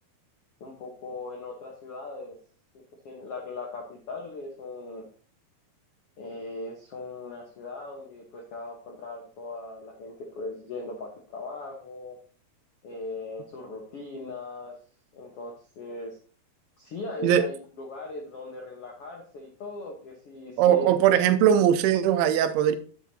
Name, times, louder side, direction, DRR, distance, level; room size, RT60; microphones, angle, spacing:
voice 1, 0.6-2.4 2.7-5.1 6.2-12.2 12.8-14.7 15.1-16.2 16.8-20.9, left 3 dB, 80° left, 1.3 m, -39 dB
voice 2, 20.6-22.8, right 10 dB, 80° right, 2.4 m, -20 dB
9.9 x 8.0 x 2.8 m
omnidirectional pair, 4.7 m